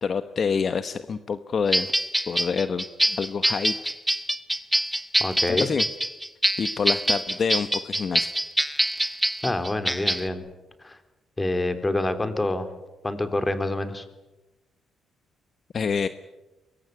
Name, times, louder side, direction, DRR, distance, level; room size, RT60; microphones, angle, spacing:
voice 1, 0.0-1.9 2.3-2.8 3.1-3.7 5.5-5.9 6.6-8.3 15.7-16.1, left 6 dB, 45° left, 11 dB, 1.1 m, -27 dB
sound 1, 1.7-10.3, right 1 dB, 5° right, 1.8 m, -25 dB
voice 2, 5.2-5.7 9.4-10.5 10.8-11.0 11.4-12.7 13.0-14.1, left 2 dB, 15° left, 9 dB, 3.5 m, -27 dB
24.0 x 23.0 x 9.5 m, 1.1 s
cardioid pair, 90°, 0 cm